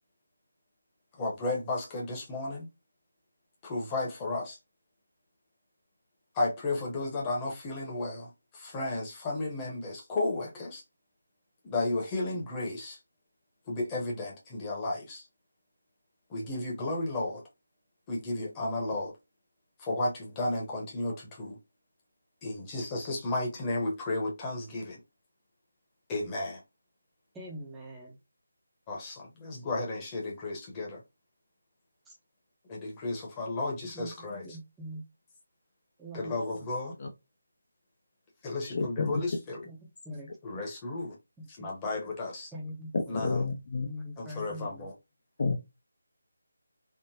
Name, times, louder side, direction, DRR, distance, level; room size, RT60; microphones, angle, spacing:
voice 1, 1.2-2.7 3.6-4.6 6.3-10.8 11.6-13.0 13.7-15.3 16.3-17.4 18.1-19.1 19.8-21.6 22.4-25.0 26.1-26.6 28.9-31.0 32.7-34.4 36.1-36.9 38.4-39.6 40.4-41.1 41.6-42.5 43.1-43.4 44.2-44.9, left 2 dB, 15° left, 0.9 m, -33 dB
voice 2, 27.3-28.2 32.1-32.2 33.9-35.1 36.0-36.7 39.2-39.3 39.7-39.8 40.0-40.3 41.4-41.7 42.5-43.2 43.9-44.9, equal, 5° right, 0.6 m, -43 dB
voice 3, 38.7-39.2 42.9-43.9 45.4-45.6, left 4 dB, 45° left, 0.5 m, -30 dB
3.6 x 2.1 x 2.7 m
figure-of-eight pair, 165°, 0 cm